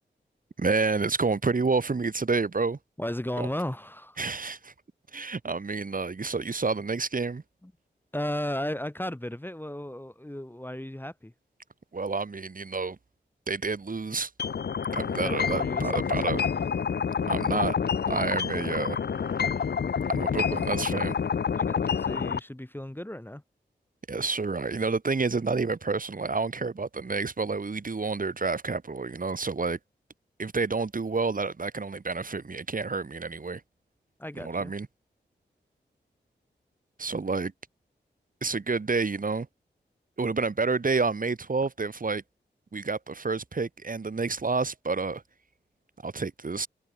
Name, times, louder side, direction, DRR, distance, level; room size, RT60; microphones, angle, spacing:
voice 1, 0.6-2.8 3.4-3.5 4.2-4.7 5.1-7.4 11.9-13.0 13.5-14.3 14.9-16.4 17.3-17.8 18.1-19.0 20.1-21.1 24.1-29.8 30.4-33.6 34.4-34.9 37.0-37.5 38.4-39.5 40.2-42.2 42.7-45.2 46.0-46.7, right 4 dB, 50° right, 1.8 m, -29 dB
voice 2, 3.0-4.2 7.6-7.7 8.1-11.3 15.1-16.4 21.5-23.4 34.2-34.7, left 1 dB, 10° left, 1.6 m, -35 dB
sound 1, 14.4-22.4, left 6 dB, 65° left, 0.8 m, -28 dB
cardioid pair, 40°, 19 cm